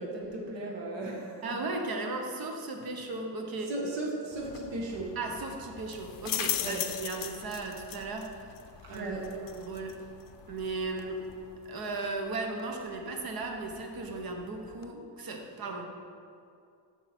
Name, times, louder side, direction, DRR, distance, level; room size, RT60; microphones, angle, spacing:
voice 1, 0.0-1.5 3.7-5.2 6.6-6.8 8.8-9.3, right 2 dB, 75° right, -2 dB, 1.4 m, -36 dB
voice 2, 1.4-3.7 5.1-8.5 8.9-10.0 10.5-11.2 11.7-15.9, right 3 dB, 55° right, 3 dB, 1.1 m, -36 dB
sound 1, 4.3-14.9, left 10 dB, 50° left, 0.5 m, -41 dB
8.5 x 6.0 x 4.3 m, 2.4 s
cardioid pair, 140°, 44 cm